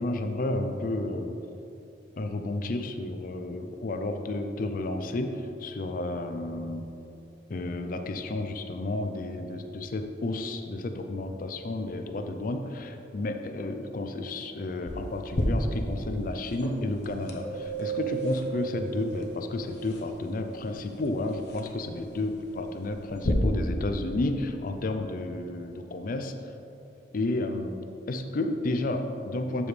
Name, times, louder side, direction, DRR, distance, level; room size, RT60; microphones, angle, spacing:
voice 1, 0.0-1.4 2.2-6.9 7.5-26.3 27.1-27.7 28.1-29.7, left 2 dB, 50° left, 6 dB, 0.5 m, -31 dB
sound 1, 14.9-23.3, left 1 dB, 65° left, 0.9 m, -36 dB
Keyboard (musical), 17.4-20.2, right 6 dB, 15° left, 1.2 m, -36 dB
7.9 x 7.1 x 3.3 m, 2.8 s
head